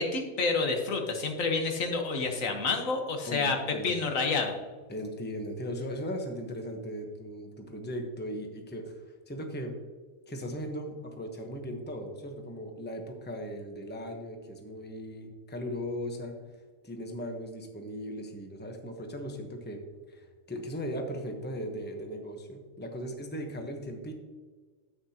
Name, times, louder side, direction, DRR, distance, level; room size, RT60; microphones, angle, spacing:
voice 1, 0.0-4.5, left 4 dB, 80° left, 3 dB, 1.6 m, -29 dB
voice 2, 3.3-3.9 4.9-9.7 10.3-16.4 16.8-19.8 20.1-24.1, equal, 10° left, 3 dB, 0.9 m, -38 dB
9.8 x 8.2 x 2.9 m, 1.4 s
omnidirectional pair, 1.4 m